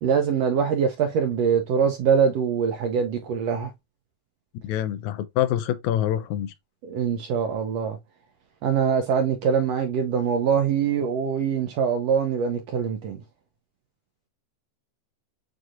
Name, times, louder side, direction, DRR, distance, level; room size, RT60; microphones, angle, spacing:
voice 1, 0.0-3.7 6.8-8.0 8.6-13.2, right 7 dB, 80° right, 1.5 m, -23 dB
voice 2, 4.6-6.5, left 11 dB, 80° left, 1.8 m, -25 dB
7.6 x 2.7 x 2.4 m
omnidirectional pair, 3.5 m